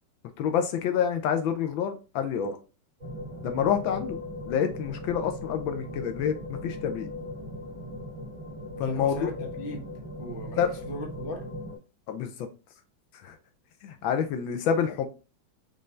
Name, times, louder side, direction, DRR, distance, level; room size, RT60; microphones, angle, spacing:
voice 1, 0.4-2.6 3.4-4.2 4.5-7.1 8.8-9.3 10.6-10.7 12.1-12.3 13.2-13.4 13.8-15.1, left 8 dB, 80° left, 1.4 m, -27 dB
sound 1, 3.0-11.8, left 1 dB, 25° right, 1.5 m, -38 dB
voice 2, 8.8-9.9 10.2-11.5, equal, 35° left, 1.0 m, -38 dB
5.4 x 2.6 x 3.2 m
omnidirectional pair, 2.2 m